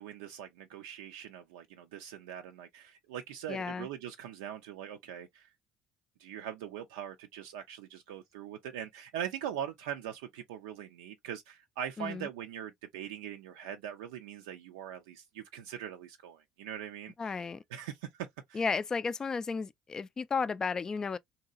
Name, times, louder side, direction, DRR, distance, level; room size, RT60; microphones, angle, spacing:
voice 1, 0.0-5.5 6.2-17.4 17.7-18.6, right 9 dB, 80° right, 0.4 m, -42 dB
voice 2, 3.5-3.9 12.0-12.3 17.2-17.6 18.5-21.2, left 5 dB, 30° left, 0.3 m, -33 dB
2.9 x 2.8 x 2.3 m
hypercardioid pair, 60°, 2 cm